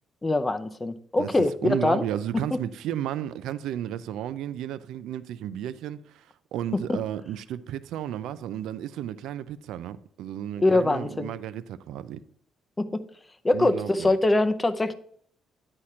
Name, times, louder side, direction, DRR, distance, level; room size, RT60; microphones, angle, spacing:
voice 1, 0.2-2.0 6.9-7.0 10.6-11.3 12.8-13.0 13.4-14.9, left 2 dB, 20° left, 0.6 m, -23 dB
voice 2, 1.2-12.2 13.5-14.1, right 11 dB, 85° right, 0.4 m, -33 dB
9.9 x 4.3 x 4.8 m
cardioid pair, 90°, 0 cm